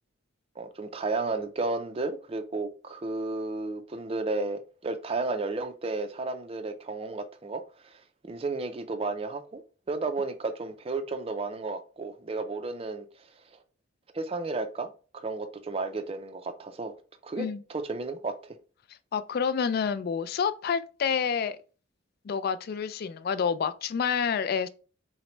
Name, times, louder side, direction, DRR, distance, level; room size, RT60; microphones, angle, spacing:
voice 1, 0.6-9.6 9.9-13.1 14.1-16.9 17.2-18.3, right 3 dB, 30° right, 0.4 m, -33 dB
voice 2, 19.1-21.6 22.2-24.7, left 6 dB, 50° left, 0.3 m, -28 dB
5.7 x 2.1 x 3.1 m
head